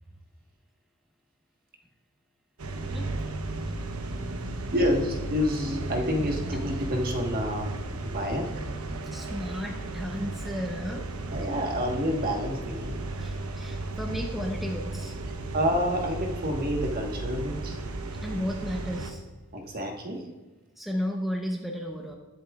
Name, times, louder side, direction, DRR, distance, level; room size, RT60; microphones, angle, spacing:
sound 1, 2.6-19.1, right 2 dB, 75° right, 0.9 m, -34 dB
voice 1, 4.7-7.7 8.0-8.5 11.3-13.0 15.5-17.8 19.5-20.2, equal, 40° right, 2 dB, 1.4 m, -28 dB
voice 2, 9.1-11.1 13.2-15.1 18.2-19.2 20.8-22.1, equal, ahead, 1 dB, 0.7 m, -33 dB
20.5 x 7.3 x 2.4 m, 1.2 s
head